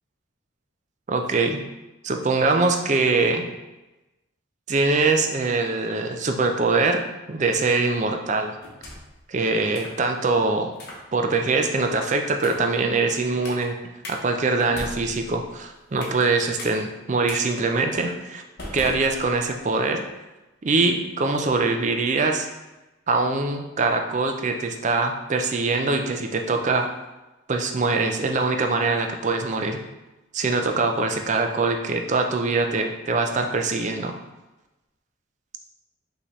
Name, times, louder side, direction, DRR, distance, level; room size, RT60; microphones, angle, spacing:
voice 1, 1.1-1.6 2.0-3.5 4.7-7.0 7.3-8.5 9.3-10.7 11.1-13.8 14.1-18.4 18.7-20.0 20.6-22.5 23.1-26.9 27.5-29.8 30.3-34.2, right 3 dB, 35° right, 4 dB, 0.4 m, -23 dB
sound 1, 8.6-9.2 9.7-10.0 10.7-11.0 11.6-11.9 12.4-12.7 13.4-13.7 14.0-14.2 14.6-16.3 16.6-16.7 17.3-17.4 17.9-18.1 18.6-19.6, left 1 dB, 50° left, 0.9 m, -39 dB
5.6 x 2.8 x 3.1 m, 1.1 s
head